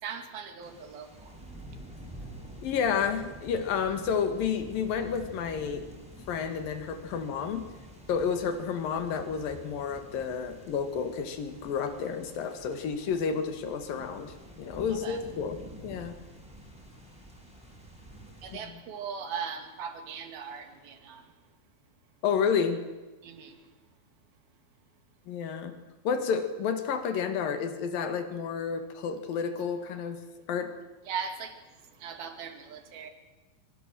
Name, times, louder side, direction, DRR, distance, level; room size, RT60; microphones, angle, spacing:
voice 1, 0.0-1.4 15.0-15.2 18.4-21.2 23.2-23.6 31.1-31.6 32.0-33.1, right 6 dB, 55° right, 6 dB, 3.8 m, -39 dB
sound 1, 0.6-18.6, right 1 dB, ahead, 6.0 m, -48 dB
voice 2, 2.6-5.8 6.3-7.7 8.1-15.6 15.8-16.1 18.5-18.8 22.2-22.8 25.3-25.7 26.0-30.2 30.5-30.7, left 6 dB, 55° left, 8 dB, 3.2 m, -30 dB
24.5 x 24.0 x 7.7 m, 1.2 s
omnidirectional pair, 5.5 m